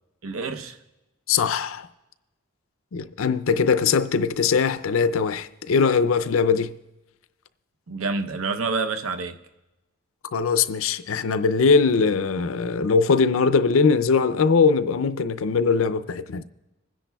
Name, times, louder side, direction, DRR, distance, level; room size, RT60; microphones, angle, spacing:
voice 1, 0.2-0.8 7.9-9.4, right 4 dB, 85° right, 0.7 m, -28 dB
voice 2, 1.3-1.9 2.9-6.7 10.3-16.4, left 5 dB, 85° left, 0.5 m, -21 dB
26.5 x 10.0 x 2.3 m
head